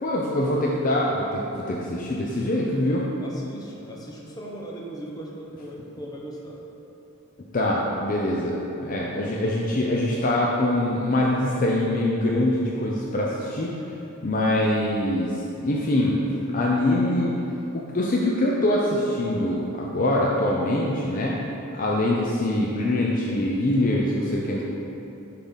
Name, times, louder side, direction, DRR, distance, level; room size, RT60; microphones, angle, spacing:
voice 1, 0.0-3.0 7.5-8.5 8.8-13.7 14.2-16.2 16.5-17.3 17.7-21.4 21.7-24.6, left 1 dB, 40° left, -3 dB, 0.5 m, -24 dB
voice 2, 3.2-6.6 14.8-14.9, right 1 dB, 20° left, -3 dB, 0.8 m, -38 dB
7.0 x 3.8 x 5.6 m, 2.9 s
head